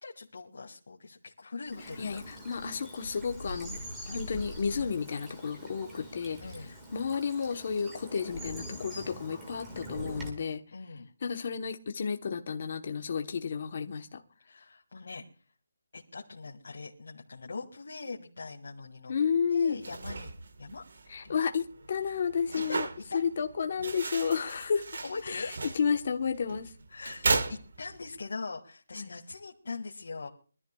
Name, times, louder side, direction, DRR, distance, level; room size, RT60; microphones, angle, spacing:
voice 1, 0.0-2.2 6.4-6.7 10.7-11.1 14.5-15.2 15.9-19.1 19.5-20.3 20.6-20.8 21.2-21.4 22.7-22.8 23.1-23.2 25.0-25.5 26.9-30.3, left 4 dB, 60° left, -1 dB, 2.1 m, -41 dB
Bird vocalization bird call bird song / Stream, 1.7-10.3, equal, 5° right, 1.9 m, -43 dB
voice 2, 2.0-3.8 4.1-6.4 6.9-10.6 11.2-14.2 19.1-19.8 21.1-22.9 23.1-24.8 25.3-26.7 28.9-29.1, left 6 dB, 35° left, 6 dB, 1.1 m, -31 dB
sound 1, 19.7-28.2, right 3 dB, 55° right, 1.6 m, -36 dB
24.0 x 13.5 x 2.4 m, 0.39 s
hypercardioid pair, 175°, 0 cm